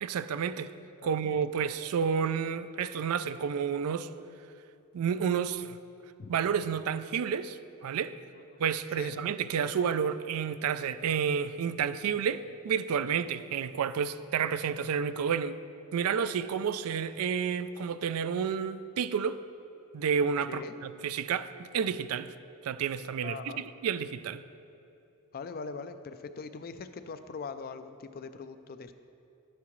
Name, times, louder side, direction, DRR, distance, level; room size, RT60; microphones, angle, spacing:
voice 1, 0.0-0.7 1.0-4.1 4.9-5.8 6.3-8.1 8.6-15.6 15.9-19.4 19.9-22.3 22.6-23.5 23.8-24.4, right 7 dB, 75° right, 14 dB, 0.3 m, -30 dB
voice 2, 1.0-1.3 6.2-6.3 8.3-8.6 9.0-9.2 20.5-20.8 23.2-23.6 25.3-28.9, left 4 dB, 40° left, 10 dB, 0.4 m, -42 dB
10.5 x 9.3 x 3.1 m, 2.7 s
head